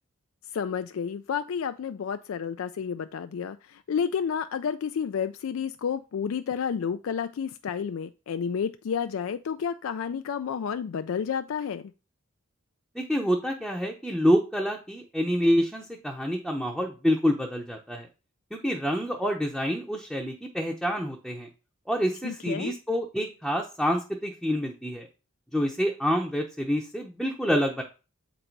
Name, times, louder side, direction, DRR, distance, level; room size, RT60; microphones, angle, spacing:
voice 1, 0.5-11.9 22.2-22.7, left 7 dB, 75° left, 0.4 m, -30 dB
voice 2, 12.9-18.1 18.5-21.5 21.9-25.1 25.5-27.8, equal, ahead, 0.7 m, -27 dB
7.7 x 4.0 x 4.5 m
head